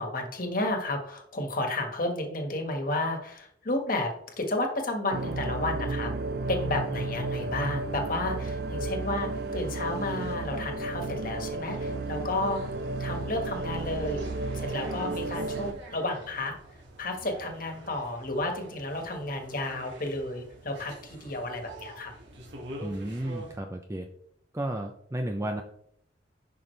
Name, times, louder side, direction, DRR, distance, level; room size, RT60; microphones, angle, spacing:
voice 1, 0.0-6.1 6.5-12.6 13.0-14.3 14.5-16.5 17.0-22.1, left 2 dB, 50° left, 3 dB, 1.6 m, -32 dB
sound 1, 5.1-15.7, right 2 dB, 60° right, 0.6 m, -33 dB
sound 2, 11.6-23.6, right 1 dB, 75° right, 2.2 m, -47 dB
voice 2, 22.8-24.1 24.5-25.6, right 1 dB, 15° right, 3 dB, 0.5 m, -33 dB
11.0 x 5.7 x 3.3 m, 0.69 s
head